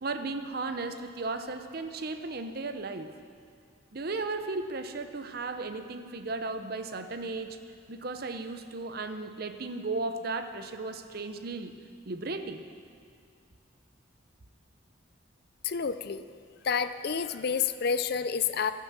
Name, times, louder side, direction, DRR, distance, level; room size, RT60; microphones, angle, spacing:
voice 1, 0.0-3.2 3.9-7.6 7.9-11.7 12.0-12.6, right 3 dB, 50° right, 8 dB, 0.7 m, -35 dB
voice 2, 15.6-16.2 16.6-18.7, left 6 dB, 50° left, 12 dB, 0.4 m, -29 dB
16.0 x 7.5 x 7.4 m, 2.3 s
head